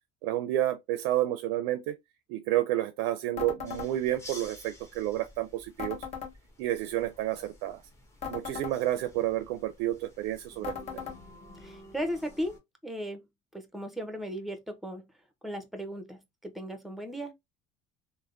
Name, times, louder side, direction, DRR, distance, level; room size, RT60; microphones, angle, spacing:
voice 1, 0.2-1.9 2.3-6.0 6.6-7.8 8.3-10.7, right 13 dB, 90° right, 0.4 m, -30 dB
sound 1, 3.4-3.9 5.8-6.3 8.2-8.8 10.6-11.2, left 7 dB, 40° left, 1.1 m, -37 dB
sound 2, 3.6-12.6, left 1 dB, 20° left, 1.0 m, -52 dB
voice 2, 11.6-12.6 12.8-13.2 13.5-15.1 15.4-17.3, equal, ahead, 0.6 m, -36 dB
3.3 x 2.1 x 2.4 m
cardioid pair, 125°, 16 cm